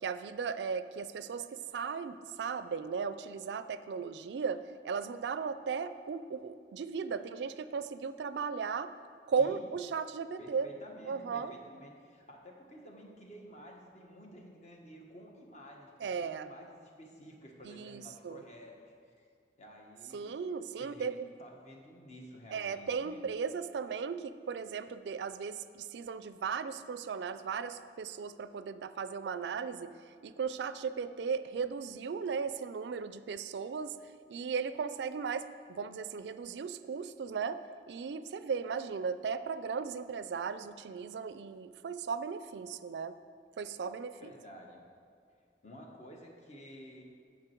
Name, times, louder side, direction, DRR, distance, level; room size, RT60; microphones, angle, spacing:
voice 1, 0.0-8.9 9.3-10.7 11.1-11.5 16.0-16.5 17.6-18.4 20.1-21.3 22.5-29.9 30.2-34.0 34.3-43.2 43.6-44.3, right 6 dB, 70° right, 13 dB, 0.4 m, -36 dB
voice 2, 10.4-19.3 19.6-20.3 20.8-21.1 21.4-23.3 42.7-43.2 44.2-44.8 45.6-47.0, equal, 40° left, 0 dB, 1.3 m, -52 dB
9.7 x 7.3 x 4.5 m, 2.2 s
head